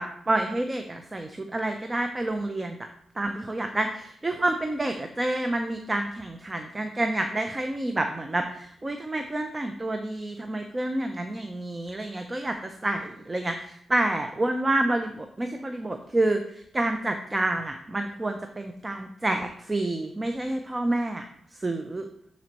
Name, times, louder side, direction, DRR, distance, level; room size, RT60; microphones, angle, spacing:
voice 1, 0.0-2.8 3.2-21.3 21.6-22.0, right 2 dB, 25° right, 5 dB, 0.5 m, -28 dB
11.0 x 4.2 x 2.9 m, 0.70 s
cardioid pair, 90°, 0 cm